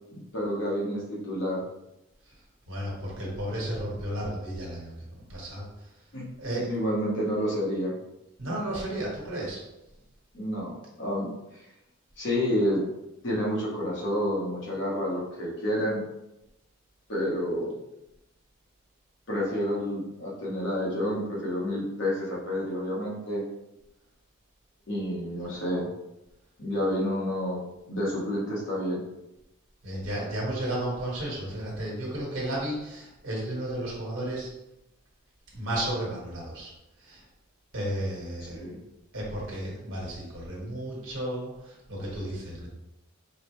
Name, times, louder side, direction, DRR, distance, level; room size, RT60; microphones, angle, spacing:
voice 1, 0.1-1.6 6.1-6.3 6.7-8.0 10.3-11.6 12.2-12.8 13.2-16.1 17.1-17.8 19.3-23.4 24.9-25.9 26.6-27.6 27.9-29.0 38.5-38.8, equal, 55° left, -4 dB, 1.2 m, -29 dB
voice 2, 2.7-5.7 6.4-6.7 8.4-9.6 29.8-34.5 35.5-36.7 37.0-37.2 37.7-38.6 39.1-42.7, right 1 dB, 65° right, -4 dB, 1.4 m, -33 dB
4.9 x 2.1 x 3.1 m, 0.92 s
head